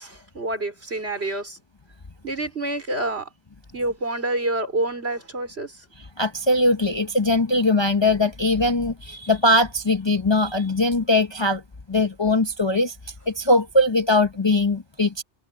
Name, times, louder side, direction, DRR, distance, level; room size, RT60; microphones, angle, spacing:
voice 1, 0.0-1.6 2.2-3.3 3.7-5.9, right 2 dB, 60° right, 4.8 m, -28 dB
voice 2, 6.2-11.6 11.9-13.0 13.3-15.2, left 2 dB, 25° left, 0.7 m, -21 dB
omnidirectional pair, 1.2 m